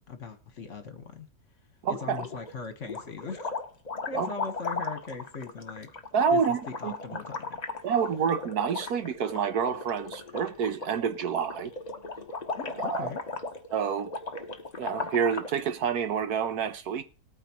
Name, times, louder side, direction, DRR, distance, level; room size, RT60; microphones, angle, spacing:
voice 1, 0.1-1.3 1.9-3.5 4.1-5.9 6.3-7.9 12.5-13.2, left 4 dB, 50° left, 1.6 m, -40 dB
voice 2, 1.8-2.2 4.1-4.3 6.1-6.9 7.8-11.7 12.8-13.1 13.7-14.1 14.8-17.0, right 7 dB, 70° right, 1.4 m, -28 dB
sound 1, 1.9-2.5 2.8-15.6, left 3 dB, 30° left, 0.9 m, -37 dB
19.5 x 9.0 x 3.0 m
omnidirectional pair, 1.8 m